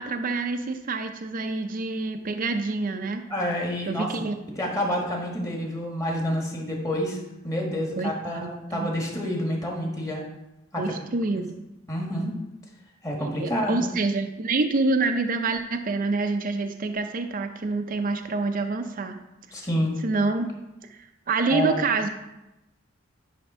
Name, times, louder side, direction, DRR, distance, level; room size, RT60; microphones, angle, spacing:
voice 1, 0.0-3.2 3.9-4.4 8.0-8.9 10.8-11.6 13.2-19.2 20.0-20.5 20.9-21.0 21.3-22.1, right 3 dB, 45° right, 6 dB, 0.5 m, -27 dB
voice 2, 3.3-4.1 4.6-7.2 7.4-10.2 10.7-10.8 11.3-11.4 11.9-12.3 13.0-13.9 19.5-20.0 21.5-21.8, equal, 15° left, -1 dB, 1.6 m, -28 dB
10.0 x 3.4 x 5.5 m, 0.93 s
head